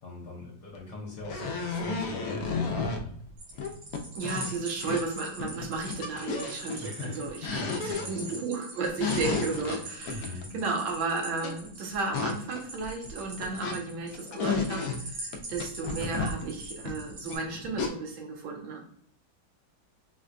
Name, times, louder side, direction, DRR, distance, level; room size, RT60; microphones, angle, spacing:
voice 1, 0.0-3.1 6.8-8.3 10.1-10.5, left 3 dB, 65° left, -4 dB, 1.3 m, -41 dB
sound 1, 0.8-0.9 1.2-3.0 3.6-5.1 5.4-6.8 7.3-8.3 8.9-11.0 11.4-11.7 11.9-13.8 14.1-15.0 15.3-17.9, left 4 dB, 85° left, 0.8 m, -32 dB
sound 2, 3.4-17.4, right 2 dB, 60° right, 1.3 m, -43 dB
voice 2, 4.1-18.8, right 4 dB, 80° right, 1 dB, 1.5 m, -34 dB
4.2 x 2.1 x 2.5 m, 0.63 s
omnidirectional pair, 2.1 m